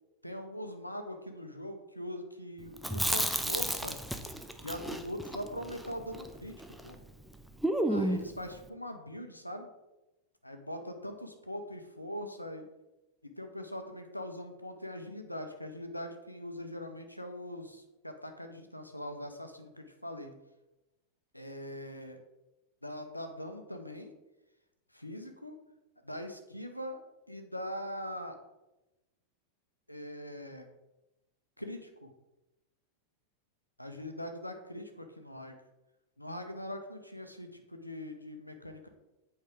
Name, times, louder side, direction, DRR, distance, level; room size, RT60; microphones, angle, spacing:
voice 1, 0.2-4.0 4.6-7.0 7.9-9.7 10.4-12.6 13.4-20.3 21.3-22.2 22.8-24.1 24.9-25.5 26.0-27.0 27.3-28.4 29.9-30.7 31.6-32.1 33.8-35.5 36.2-38.9, left 1 dB, 90° left, 6 dB, 0.8 m, -42 dB
Chewing mastication, 2.8-6.9 7.2-7.3 7.6-8.4, right 1 dB, ahead, 0.5 m, -32 dB
8.0 x 4.7 x 3.5 m, 0.99 s
figure-of-eight pair, 90°, 0 cm